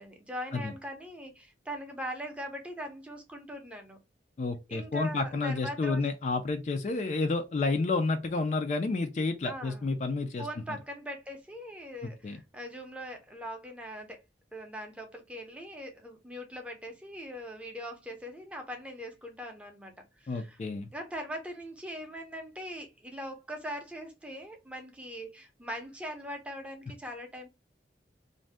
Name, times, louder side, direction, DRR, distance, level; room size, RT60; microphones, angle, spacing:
voice 1, 0.0-4.0 4.7-6.0 9.4-9.8 10.4-14.2 14.5-20.6 20.9-27.5, equal, 5° right, 0.5 m, -41 dB
voice 2, 4.4-10.5 12.0-12.4 20.3-20.9, left 3 dB, 40° left, 0.3 m, -30 dB
2.6 x 2.1 x 3.3 m
head